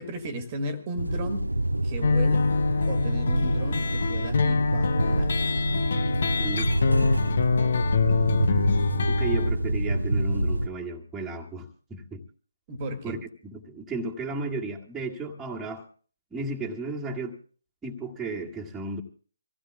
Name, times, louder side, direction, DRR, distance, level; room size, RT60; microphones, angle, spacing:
voice 1, 0.0-1.5 1.8-2.5 2.9-5.5 12.7-13.2, right 1 dB, 25° right, 8 dB, 1.7 m, -35 dB
sound 1, 1.0-10.7, right 1 dB, 85° right, 0.6 m, -26 dB
sound 2, 2.0-9.5, left 5 dB, 50° left, 0.7 m, -25 dB
voice 2, 6.4-6.7 9.1-12.2 13.0-15.8 16.3-17.4 17.8-19.0, right 3 dB, 5° right, -3 dB, 1.8 m, -34 dB
26.5 x 16.0 x 2.3 m, 0.40 s
figure-of-eight pair, 145°, 0 cm